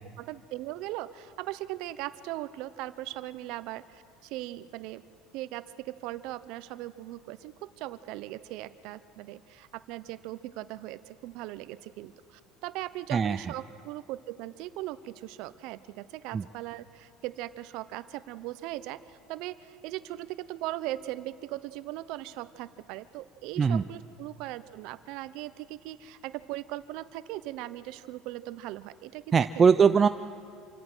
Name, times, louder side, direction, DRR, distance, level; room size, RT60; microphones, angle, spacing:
voice 1, 0.2-5.0 5.3-29.2 29.5-29.7, right 16 dB, 70° right, 14 dB, 0.8 m, -39 dB
voice 2, 29.3-30.1, right 6 dB, 25° right, 10 dB, 0.4 m, -21 dB
26.5 x 16.5 x 6.2 m, 2.5 s
supercardioid pair, 120°, 0 cm